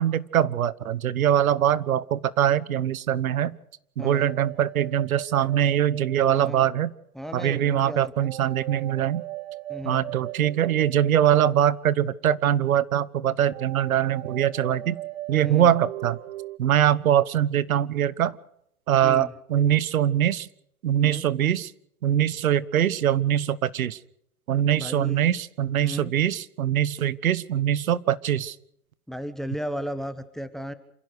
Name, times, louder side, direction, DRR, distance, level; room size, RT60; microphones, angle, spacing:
voice 1, 0.0-3.5 4.0-6.9 7.3-9.2 9.8-15.0 15.3-16.2 16.6-18.4 18.9-20.5 20.8-21.7 22.0-24.0 24.5-28.5, right 10 dB, 70° right, 19 dB, 1.2 m, -23 dB
voice 2, 4.0-4.3 6.3-6.7 7.1-8.3 9.7-10.1 15.3-15.7 19.0-19.3 21.0-21.2 24.7-25.3 25.8-26.1 29.1-30.7, equal, ahead, 13 dB, 1.1 m, -35 dB
sound 1, 4.2-6.9 8.2-12.2 13.5-16.6, right 16 dB, 45° right, 0.7 m, -38 dB
28.5 x 16.0 x 6.5 m, 0.73 s
hypercardioid pair, 135°, 43 cm